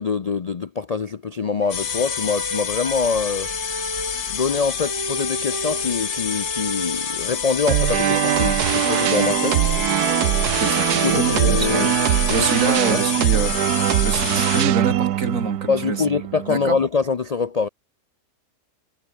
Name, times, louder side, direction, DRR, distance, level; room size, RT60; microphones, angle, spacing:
voice 1, 0.0-3.5 4.3-9.5 11.0-12.0 12.3-12.7 15.7-17.7, left 5 dB, 80° left, 0.3 m, -24 dB
sound 1, 1.6-13.7, right 2 dB, 15° right, 0.9 m, -34 dB
sound 2, 1.7-14.7, left 9 dB, 50° left, 1.0 m, -28 dB
sound 3, 7.7-16.8, right 13 dB, 85° right, 1.3 m, -21 dB
voice 2, 10.6-11.8 12.3-13.5 14.0-16.0 16.5-16.8, right 4 dB, 55° right, 2.9 m, -25 dB
omnidirectional pair, 1.7 m